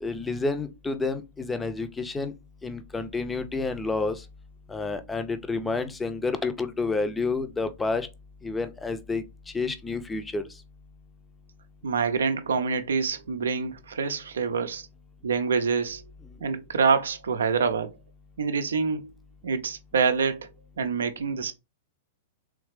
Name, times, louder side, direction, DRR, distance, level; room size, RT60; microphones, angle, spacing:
voice 1, 0.0-2.3 2.6-4.2 4.7-8.1 8.4-10.4, left 3 dB, 10° left, 0.5 m, -29 dB
voice 2, 11.8-14.9 15.2-16.0 16.4-17.9 18.4-19.1 19.4-20.5 20.8-21.5, right 5 dB, 70° right, 0.5 m, -26 dB
3.5 x 3.2 x 3.2 m
figure-of-eight pair, 105°, 0 cm